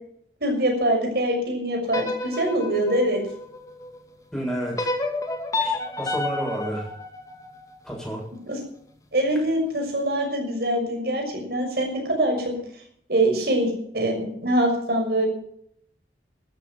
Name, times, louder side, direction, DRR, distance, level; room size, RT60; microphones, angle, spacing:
voice 1, 0.4-3.2 8.5-8.6 9.1-12.5 13.1-15.3, right 1 dB, 60° right, 3 dB, 6.2 m, -24 dB
sound 1, 1.9-4.0 4.8-7.9, left 2 dB, 20° left, 2.3 m, -30 dB
voice 2, 4.3-4.9 5.6-6.9 7.8-8.2, right 1 dB, 5° left, -3 dB, 7.2 m, -30 dB
14.0 x 13.5 x 5.7 m, 0.69 s
head